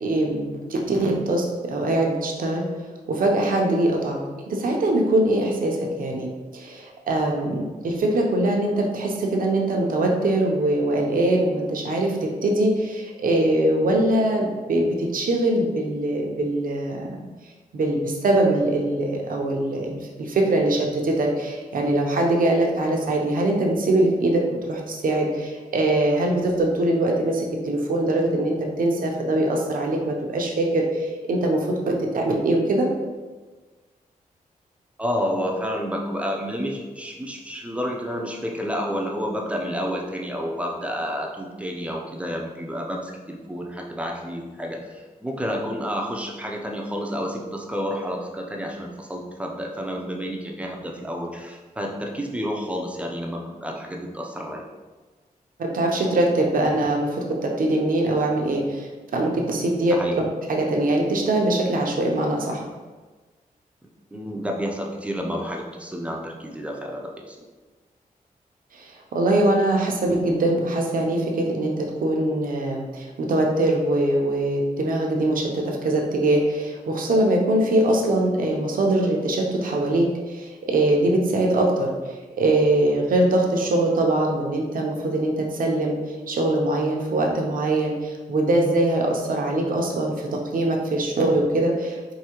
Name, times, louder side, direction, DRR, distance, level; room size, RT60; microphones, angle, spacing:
voice 1, 0.0-2.6 3.1-4.2 4.5-17.1 17.7-24.4 24.7-32.9 55.6-60.0 60.5-62.6 68.7-86.0 86.3-92.1, right 1 dB, 70° right, 0 dB, 0.7 m, -22 dB
voice 2, 35.0-54.6 59.9-60.2 64.1-67.4, equal, 10° right, 0 dB, 0.5 m, -30 dB
4.8 x 2.7 x 2.9 m, 1.3 s
wide cardioid pair, 110°, 15 cm